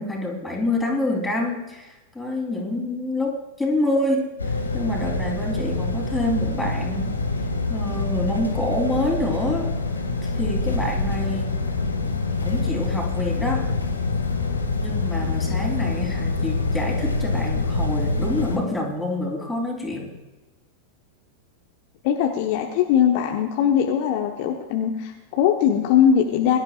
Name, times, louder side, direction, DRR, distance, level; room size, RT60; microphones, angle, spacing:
voice 1, 0.0-7.2 7.7-9.7 10.2-11.6 12.3-13.7 14.8-20.1, left 1 dB, 5° left, -1 dB, 3.6 m, -27 dB
sound 1, 4.4-18.6, left 3 dB, 80° left, 1.9 m, -25 dB
voice 2, 22.0-26.6, left 9 dB, 45° left, 2 dB, 1.2 m, -20 dB
22.5 x 12.0 x 2.5 m, 1.1 s
figure-of-eight pair, 90°, 0 cm